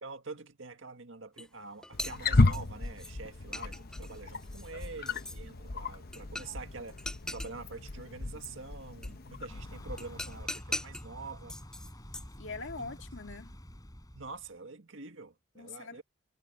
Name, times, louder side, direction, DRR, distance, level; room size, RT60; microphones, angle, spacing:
voice 1, 0.0-11.6 12.8-12.9 14.1-16.0, right 4 dB, 80° right, 1.9 m, -46 dB
sound 1, 1.4-1.5 1.8-3.1 3.5-5.4 6.1-6.6 6.9-7.5 9.0-9.1 10.0-11.1 11.5-12.4, left 1 dB, 5° left, 0.3 m, -40 dB
Wild animals, 1.9-10.4, left 3 dB, 50° left, 0.9 m, -33 dB
Thunder / Bicycle, 9.5-14.5, equal, 20° left, 4.2 m, -48 dB
voice 2, 12.4-13.6 15.6-16.0, left 3 dB, 70° left, 2.2 m, -42 dB
head